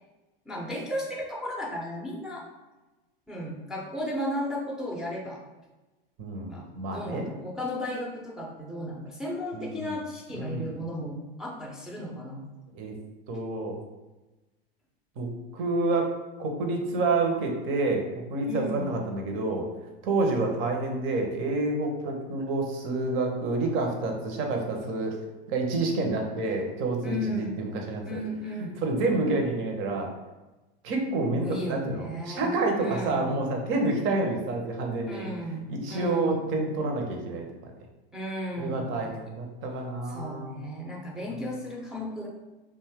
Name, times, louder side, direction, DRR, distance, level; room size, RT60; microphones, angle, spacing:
voice 1, 0.5-2.5 3.3-5.4 6.5-12.5 18.4-18.9 27.0-27.6 28.0-28.8 31.3-33.3 35.1-36.4 38.1-38.9 40.1-42.3, equal, ahead, -4 dB, 0.4 m, -35 dB
voice 2, 6.2-7.3 9.5-9.8 10.3-10.7 12.7-12.9 13.3-13.8 15.2-16.1 16.4-19.7 20.0-25.2 25.5-28.2 28.6-30.1 30.8-35.3 35.7-37.7 38.6-40.6 41.3-41.5, right 2 dB, 45° right, 2 dB, 0.7 m, -28 dB
2.5 x 2.3 x 3.4 m, 1.1 s
hypercardioid pair, 100°, 30 cm